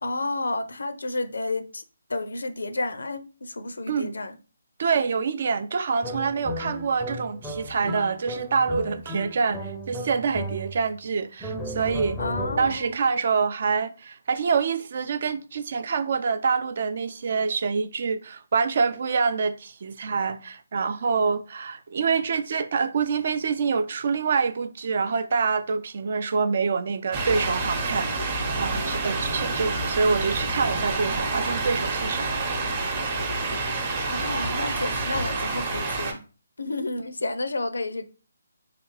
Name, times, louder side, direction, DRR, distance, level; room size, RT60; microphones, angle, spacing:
voice 1, 0.0-1.8 2.1-4.4 12.2-13.0 34.1-36.2 36.6-38.1, left 2 dB, 80° left, 0.5 m, -31 dB
voice 2, 4.8-12.2 12.6-32.6, right 5 dB, 50° right, 0.4 m, -26 dB
sound 1, 6.0-11.0 11.4-12.9, equal, ahead, 0.5 m, -35 dB
sound 2, 27.1-36.1, right 3 dB, 30° right, 0.8 m, -28 dB
3.3 x 2.9 x 3.1 m
figure-of-eight pair, 150°, 0 cm